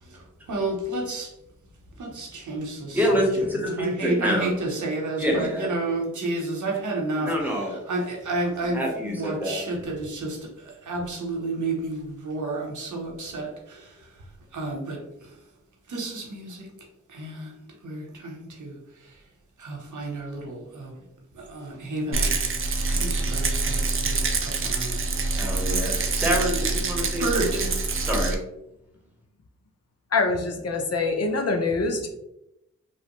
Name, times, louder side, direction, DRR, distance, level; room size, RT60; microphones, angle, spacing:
voice 1, 0.0-1.3 2.0-3.1 3.8-15.4 15.9-16.7 17.1-17.6 17.8-19.2 19.6-20.9 21.3-22.5 22.9-26.2 27.2-27.8, right 2 dB, 75° right, 0 dB, 0.8 m, -31 dB
voice 2, 2.9-4.5 5.2-5.7 7.2-7.7 8.7-9.6 25.4-27.7 28.0-28.4, equal, 5° right, -1 dB, 1.0 m, -26 dB
Rattle, 22.1-28.4, right 3 dB, 45° right, 0.5 m, -25 dB
voice 3, 30.1-32.1, left 3 dB, 55° left, 4 dB, 0.5 m, -24 dB
2.8 x 2.0 x 2.9 m, 0.85 s
cardioid pair, 45°, 30 cm